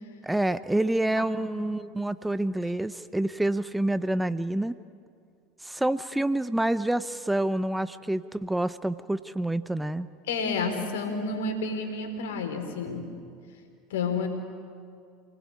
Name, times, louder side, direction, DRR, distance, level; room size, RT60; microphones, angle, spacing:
voice 1, 0.2-4.8 5.6-10.1, right 1 dB, 5° right, 14 dB, 0.7 m, -27 dB
voice 2, 0.8-1.6 10.3-13.1 13.9-14.3, left 4 dB, 75° left, 6 dB, 4.0 m, -31 dB
28.5 x 20.0 x 9.6 m, 2.3 s
hypercardioid pair, 85°, 0 cm